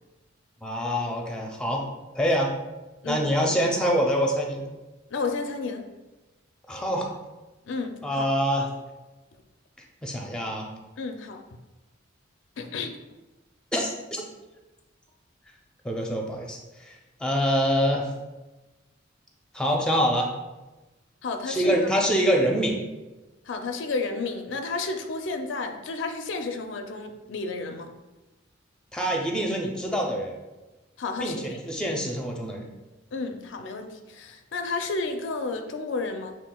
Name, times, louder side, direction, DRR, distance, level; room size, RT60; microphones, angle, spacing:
voice 1, 0.6-1.9 2.1-2.5 3.1-4.6 6.7-7.1 8.0-8.7 10.0-10.7 13.7-14.2 15.8-16.6 16.9-17.0 17.2-18.1 19.5-20.3 21.5-22.8 28.9-30.3 31.2-32.7, equal, 5° left, 0 dB, 0.5 m, -25 dB
voice 2, 5.1-5.9 7.7-8.2 11.0-11.4 12.6-13.0 21.2-21.9 23.5-27.9 31.0-31.6 33.1-36.4, left 3 dB, 65° left, 5 dB, 0.4 m, -32 dB
6.6 x 3.2 x 2.2 m, 1.1 s
head